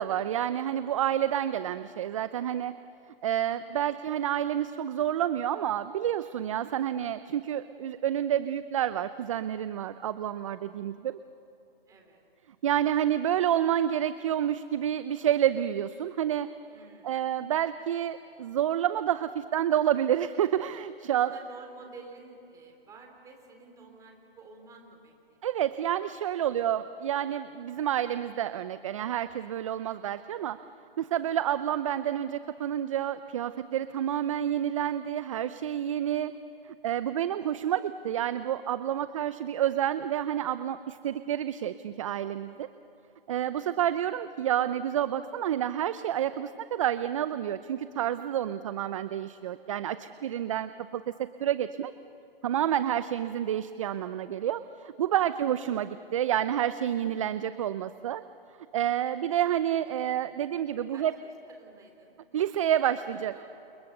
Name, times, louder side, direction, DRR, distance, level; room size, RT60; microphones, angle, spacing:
voice 1, 0.0-2.7 3.2-11.2 12.6-16.5 17.0-21.3 25.4-30.6 31.0-36.3 36.8-42.7 43.3-51.1 51.4-51.9 52.4-58.2 58.7-61.1 62.3-63.3, right 10 dB, 35° right, 13 dB, 0.6 m, -29 dB
voice 2, 3.5-4.0 11.9-12.2 16.7-17.3 21.1-25.5 26.4-26.9 31.1-31.4 37.0-37.6 43.4-43.9 50.2-50.6 55.2-55.3 58.9-59.3 60.9-62.7 63.1-63.5, right 3 dB, 10° right, 2 dB, 3.7 m, -53 dB
29.5 x 29.0 x 6.7 m, 2.9 s
hypercardioid pair, 150°, 30 cm